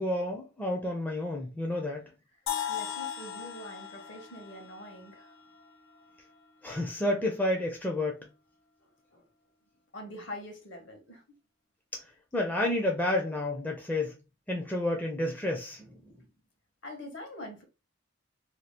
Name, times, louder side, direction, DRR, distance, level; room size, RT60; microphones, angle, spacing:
voice 1, 0.0-2.0 6.6-8.2 12.3-14.2 14.5-16.1, left 1 dB, 10° left, 0.4 m, -30 dB
sound 1, 2.5-6.4, left 9 dB, 80° left, 0.5 m, -38 dB
voice 2, 2.7-5.3 9.1-9.2 9.9-11.2 16.8-17.6, left 1 dB, 60° left, 1.0 m, -44 dB
2.8 x 2.3 x 3.2 m
head